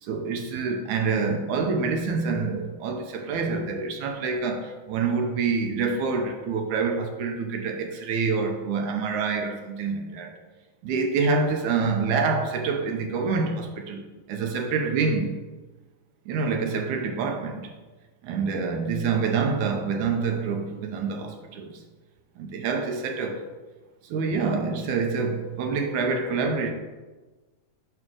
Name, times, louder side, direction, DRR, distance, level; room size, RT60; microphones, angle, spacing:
voice 1, 0.0-10.3 10.8-15.4 16.3-17.7 18.2-21.8 22.4-23.5 24.0-26.7, right 4 dB, 75° right, 2.0 m, -27 dB
9.0 x 3.7 x 6.2 m
omnidirectional pair, 3.9 m